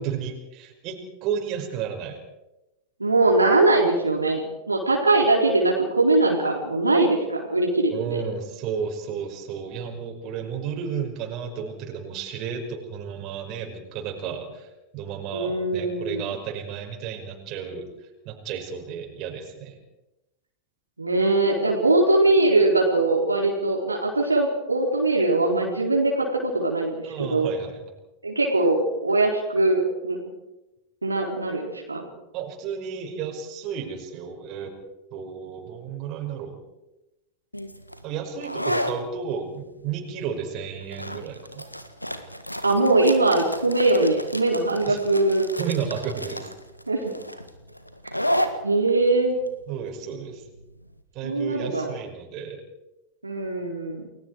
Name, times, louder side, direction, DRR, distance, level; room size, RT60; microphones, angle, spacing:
voice 1, 0.0-2.2 7.9-17.9 18.3-19.8 27.0-27.8 32.3-34.7 35.1-36.6 38.0-41.7 44.9-45.0 45.6-46.5 49.7-50.4 51.1-52.6, right 7 dB, 40° right, 3 dB, 5.5 m, -32 dB
voice 2, 3.0-7.9 15.3-16.3 21.0-27.5 28.2-30.2 31.0-32.0 42.6-45.4 46.9-47.0 48.6-49.4 51.2-51.9 53.2-54.1, right 2 dB, 80° right, -1 dB, 4.2 m, -21 dB
sound 1, 37.5-50.9, equal, 90° left, 1.8 m, -32 dB
30.0 x 21.0 x 4.8 m, 0.96 s
figure-of-eight pair, 90°, 0 cm